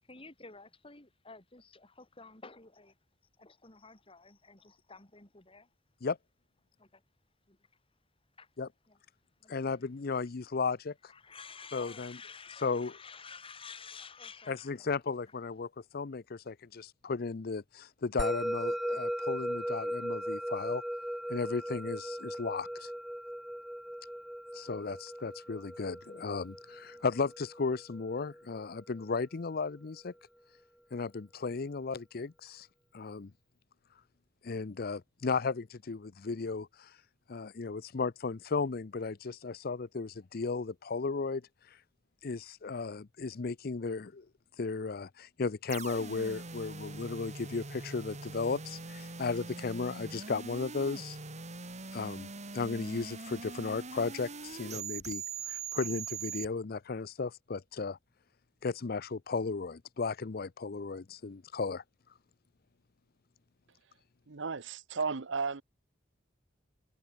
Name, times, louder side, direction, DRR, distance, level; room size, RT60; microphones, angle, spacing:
voice 1, 0.0-3.0 3.4-5.7 6.8-7.0 7.5-7.8 8.4-8.5 8.9-9.0 9.4-9.9 11.1-14.9, left 5 dB, 30° left, 3.5 m, -51 dB
voice 2, 9.5-10.9 11.7-12.2 12.6-12.9 14.5-20.8 21.3-22.9 24.5-30.1 30.9-32.7 32.9-33.3 34.4-36.9 37.3-41.4 42.2-44.3 44.6-51.2 51.9-52.3 52.5-58.0 58.6-61.8, left 4 dB, 50° left, 0.6 m, -35 dB
Musical instrument, 18.2-28.8, equal, ahead, 0.4 m, -38 dB
sound 1, 45.7-56.5, right 4 dB, 35° right, 2.7 m, -42 dB
voice 3, 64.3-65.6, right 4 dB, 70° right, 0.9 m, -34 dB
head